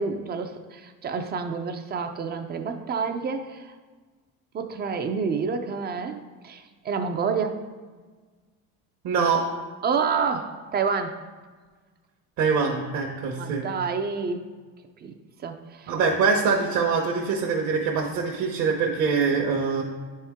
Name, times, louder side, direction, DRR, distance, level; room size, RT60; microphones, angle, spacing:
voice 1, 0.0-3.7 4.5-7.6 9.8-11.2 13.4-14.4 15.0-15.1 15.4-15.9, right 5 dB, 30° right, 7 dB, 0.4 m, -28 dB
voice 2, 9.0-9.4 12.4-13.7 15.9-19.8, right 5 dB, 50° right, -2 dB, 0.9 m, -24 dB
9.5 x 4.3 x 3.5 m, 1.4 s
cardioid pair, 150°, 36 cm